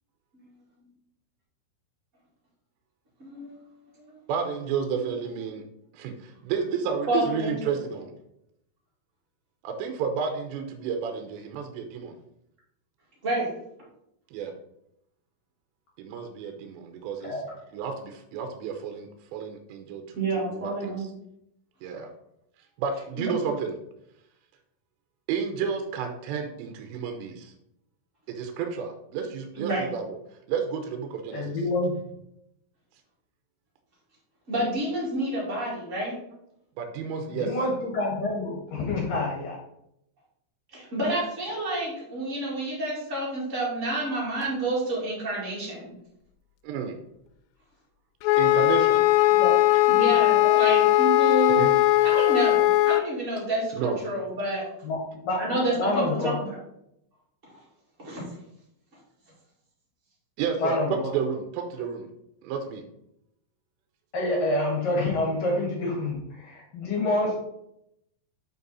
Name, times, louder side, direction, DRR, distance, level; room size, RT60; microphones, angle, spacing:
voice 1, 3.2-4.2 7.1-7.7 13.2-13.5 20.1-21.2 23.2-23.3 29.5-29.9 34.5-36.1 40.7-45.9 49.9-51.6 52.0-54.6 55.4-56.5 57.5-57.6 58.0-58.2, right 1 dB, 55° right, -5 dB, 0.8 m, -29 dB
voice 2, 4.3-5.6 5.9-8.1 9.6-12.1 14.3-14.5 16.0-17.4 17.7-20.0 20.5-21.1 21.8-22.1 22.8-23.7 25.3-27.5 28.3-30.2 30.5-31.6 36.8-37.5 46.6-47.0 48.4-49.1 51.5-51.7 53.7-54.0 60.4-62.1 62.4-62.8, right 6 dB, 80° right, 4 dB, 2.7 m, -31 dB
voice 3, 31.3-32.0 37.3-39.6 49.4-49.5 50.4-50.6 54.8-56.4 60.6-61.1 64.1-67.4, left 2 dB, 60° left, -3 dB, 2.6 m, -27 dB
Wind instrument woodwind instrument, 48.2-53.1, left 17 dB, 90° left, 3.2 m, -19 dB
8.2 x 4.6 x 4.1 m, 0.79 s
omnidirectional pair, 5.7 m